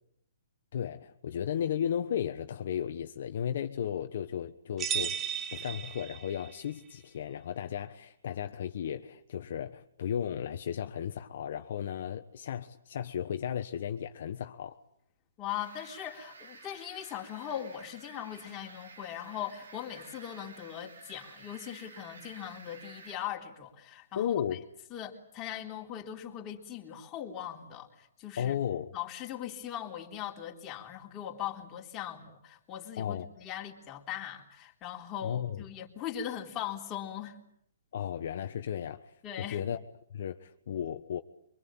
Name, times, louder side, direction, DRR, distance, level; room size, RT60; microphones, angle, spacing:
voice 1, 0.7-5.2 5.5-14.8 24.1-24.6 28.4-28.9 33.0-33.3 35.2-35.6 37.9-39.8 40.1-41.2, left 9 dB, 55° left, 1.3 m, -35 dB
sound 1, 4.8-6.6, right 8 dB, 15° right, 1.2 m, -35 dB
voice 2, 15.4-24.3 24.9-28.6 28.9-37.4 39.2-39.6, left 10 dB, 20° left, 3.7 m, -40 dB
sound 2, 15.5-23.2, right 4 dB, 75° right, 5.9 m, -52 dB
24.5 x 24.5 x 8.9 m
hypercardioid pair, 155°, 0 cm